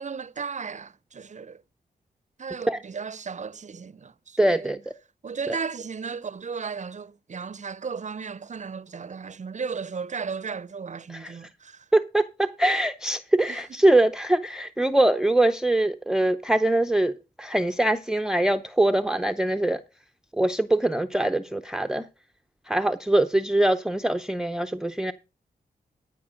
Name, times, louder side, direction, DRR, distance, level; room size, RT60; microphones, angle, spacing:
voice 1, 0.0-1.6 2.4-4.8 5.2-11.8 13.5-13.6, right 5 dB, 45° right, 0.6 m, -35 dB
voice 2, 4.4-4.8 11.1-11.3 11.9-19.8 20.4-22.1 22.7-25.1, right 1 dB, 5° right, 0.6 m, -23 dB
13.0 x 5.0 x 6.3 m
cardioid pair, 50°, 17 cm